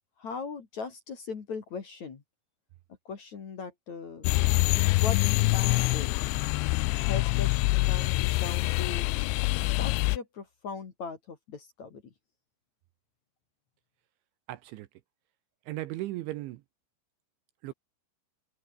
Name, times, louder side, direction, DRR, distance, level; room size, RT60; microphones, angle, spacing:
voice 1, 0.2-2.2 3.0-4.3 4.8-5.2 5.5-6.2 7.1-9.1 9.5-12.0, left 5 dB, 45° left, 3.1 m, -39 dB
sound 1, 4.2-10.2, left 23 dB, 90° left, 2.6 m, -25 dB
voice 2, 14.5-15.0 15.6-16.6 17.6-17.7, right 16 dB, 75° right, 3.0 m, -37 dB
omnidirectional pair, 5.9 m